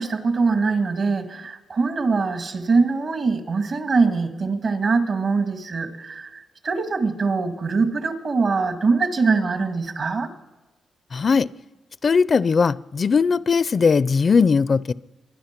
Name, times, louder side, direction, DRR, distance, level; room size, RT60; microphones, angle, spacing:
voice 1, 0.0-10.3, right 4 dB, 60° right, 1.8 m, -23 dB
voice 2, 11.1-11.5 12.0-14.9, left 5 dB, 50° left, 0.4 m, -19 dB
24.0 x 10.5 x 5.9 m
cardioid pair, 75°, 0 cm